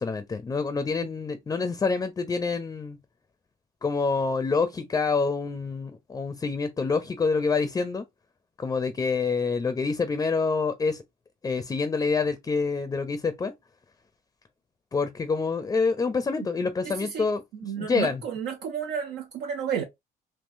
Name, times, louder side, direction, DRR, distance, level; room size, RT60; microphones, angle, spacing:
voice 1, 0.0-3.0 3.8-8.0 8.6-11.0 11.4-13.5 14.9-17.4 17.8-18.2, left 4 dB, 20° left, 0.5 m, -27 dB
voice 2, 16.8-17.3 17.6-19.8, right 7 dB, 85° right, 0.7 m, -31 dB
3.6 x 2.7 x 2.5 m
cardioid pair, 110°, 17 cm